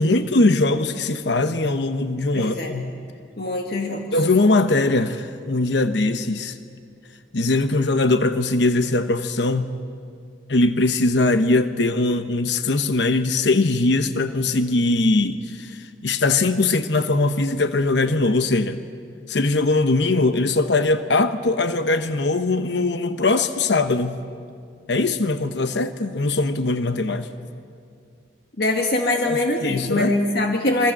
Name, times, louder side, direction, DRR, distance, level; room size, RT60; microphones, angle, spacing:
voice 1, 0.0-2.9 4.1-6.6 7.3-9.7 10.5-18.8 19.3-24.2 24.9-27.3 29.2-30.1, left 2 dB, 70° left, 9 dB, 0.9 m, -21 dB
voice 2, 2.3-2.7 3.4-4.0 28.6-30.9, left 2 dB, 55° left, 2 dB, 1.9 m, -22 dB
27.0 x 23.5 x 7.5 m, 2.3 s
head